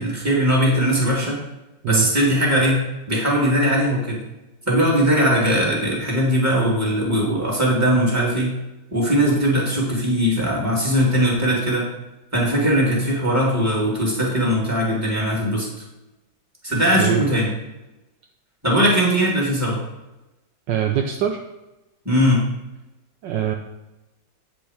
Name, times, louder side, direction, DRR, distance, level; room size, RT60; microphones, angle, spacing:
voice 1, 0.0-1.4 1.9-4.2 4.7-8.5 8.9-11.9 12.3-15.7 16.6-17.5 18.6-19.8 22.0-22.5, equal, 10° right, -5 dB, 2.4 m, -20 dB
voice 2, 20.7-21.4 23.2-23.5, right 10 dB, 75° right, 3 dB, 1.3 m, -22 dB
8.9 x 5.2 x 4.9 m, 1.0 s
omnidirectional pair, 2.2 m